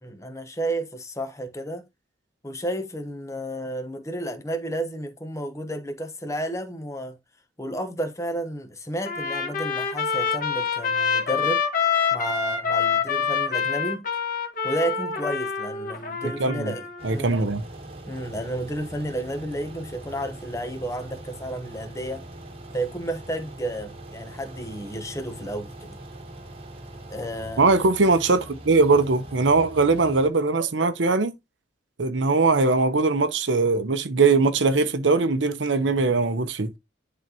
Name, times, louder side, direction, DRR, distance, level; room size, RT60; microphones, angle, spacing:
voice 1, 0.0-1.8 2.4-7.2 7.6-11.6 12.1-14.0 14.6-16.8 17.1-17.4 18.1-22.2 22.7-26.0 27.1-27.7, right 1 dB, 15° left, 1.0 m, -31 dB
Trumpet, 9.0-17.2, left 6 dB, 45° left, 1.6 m, -26 dB
voice 2, 16.4-16.7 17.0-17.6 27.6-31.3 32.0-36.7, right 3 dB, 80° right, 0.8 m, -21 dB
sound 1, 17.0-30.3, right 1 dB, 30° right, 1.4 m, -42 dB
10.5 x 4.0 x 2.9 m
head